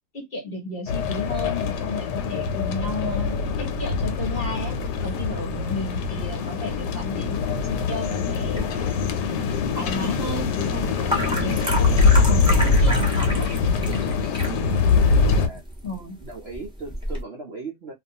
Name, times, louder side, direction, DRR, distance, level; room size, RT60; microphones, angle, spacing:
voice 1, 0.1-9.0 9.7-13.5 15.8-16.2, left 3 dB, 45° left, 0.9 m, -33 dB
sound 1, 0.9-15.5, left 4 dB, 85° left, 1.2 m, -23 dB
sound 2, 8.5-17.2, equal, 5° right, 0.4 m, -32 dB
voice 2, 11.1-11.6 14.4-14.7 15.2-15.6 16.2-17.9, right 4 dB, 65° right, 0.6 m, -38 dB
2.6 x 2.3 x 2.7 m
omnidirectional pair, 1.8 m